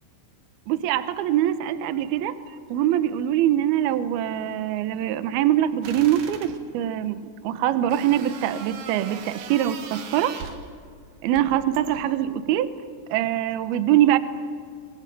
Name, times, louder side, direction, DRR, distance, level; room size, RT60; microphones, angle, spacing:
voice 1, 0.7-2.3 2.7-10.3 11.2-12.7 13.1-14.2, right 12 dB, 75° right, 11 dB, 2.3 m, -23 dB
sound 1, 5.8-6.5 7.9-10.7 11.3-12.2, right 6 dB, 60° right, 3.3 m, -40 dB
25.5 x 22.0 x 9.3 m, 2.1 s
omnidirectional pair, 5.9 m